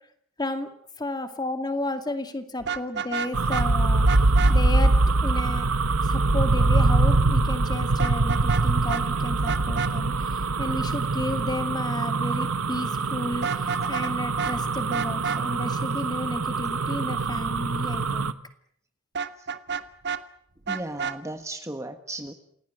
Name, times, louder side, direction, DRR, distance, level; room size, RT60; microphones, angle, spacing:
voice 1, 0.4-0.7 1.0-4.1 4.5-4.9 5.2-5.7 6.0-18.3, left 1 dB, 20° left, 8 dB, 2.3 m, -32 dB
Vehicle horn car horn honking, 2.6-3.7 4.1-4.5 8.0-8.6 8.9-9.0 9.5-9.9 13.3-14.1 14.4-14.5 14.9-15.4 19.1-20.2 20.7-21.2, right 6 dB, 50° right, 1.3 m, -30 dB
sound 1, 3.3-18.3, right 3 dB, 85° right, 1.3 m, -23 dB
voice 2, 20.7-22.3, right 1 dB, 15° right, 7 dB, 1.5 m, -35 dB
28.5 x 18.0 x 9.0 m, 0.69 s
head